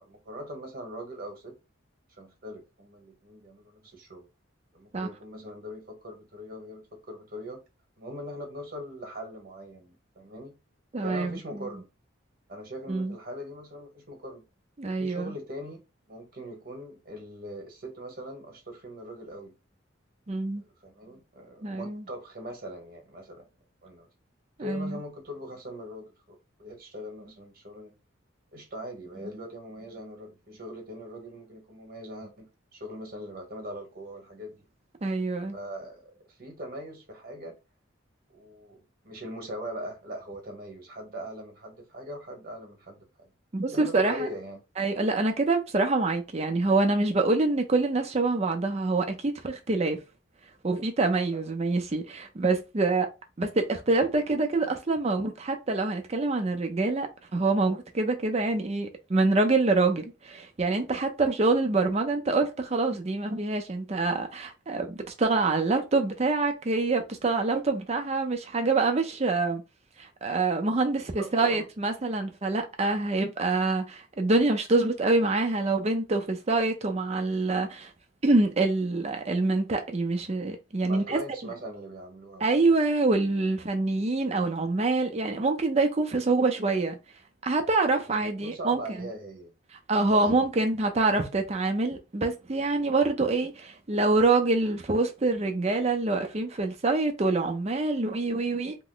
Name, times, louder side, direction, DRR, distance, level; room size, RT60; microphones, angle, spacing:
voice 1, 0.0-1.5 2.2-4.3 4.7-7.6 8.0-10.5 11.0-11.9 12.5-14.4 15.0-15.8 16.1-19.5 20.6-23.5 23.8-24.1 24.6-26.1 26.6-28.0 28.5-34.6 35.5-37.6 38.3-43.3 43.7-44.6 51.3-51.5 71.2-71.7 80.8-82.7 88.1-89.5 90.2-90.6 91.0-91.2, equal, 50° right, 1.1 m, -41 dB
voice 2, 10.9-11.4 12.9-13.1 14.8-15.3 20.3-20.6 21.6-22.0 24.6-25.0 29.2-29.3 35.0-35.6 43.5-44.3 44.8-50.0 50.6-53.1 53.4-69.6 70.0-77.9 78.2-81.2 82.4-87.0 87.4-89.1 89.9-98.8, right 3 dB, 35° right, 0.5 m, -26 dB
2.9 x 2.1 x 3.8 m
head